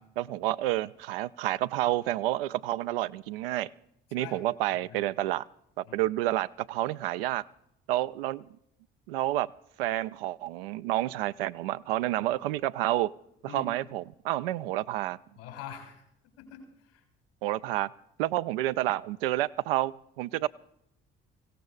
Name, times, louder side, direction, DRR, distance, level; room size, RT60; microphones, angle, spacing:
voice 1, 0.2-3.7 4.1-5.5 5.8-7.4 7.9-8.4 9.1-9.5 9.8-13.1 13.4-15.2 17.4-17.9 18.2-20.5, right 15 dB, 75° right, 14 dB, 0.5 m, -29 dB
voice 2, 4.1-4.5 4.8-5.0 5.8-6.0 12.3-12.4 13.5-13.7 15.4-16.0 16.4-17.0, left 8 dB, 75° left, 4 dB, 3.7 m, -44 dB
26.0 x 16.5 x 2.4 m, 0.77 s
figure-of-eight pair, 45°, 29 cm